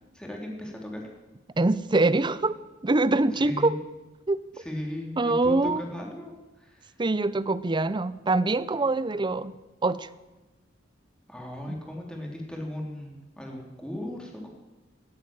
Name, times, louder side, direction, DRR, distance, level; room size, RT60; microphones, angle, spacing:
voice 1, 0.1-1.0 3.3-3.7 4.5-6.3 6.6-6.9 11.3-14.5, left 1 dB, 5° left, 0 dB, 3.3 m, -37 dB
voice 2, 1.6-2.6 2.8-3.8 4.3-4.4 5.2-5.8 7.0-9.5 9.8-10.1, right 2 dB, 25° right, 16 dB, 0.6 m, -24 dB
17.5 x 8.8 x 8.9 m, 1.1 s
head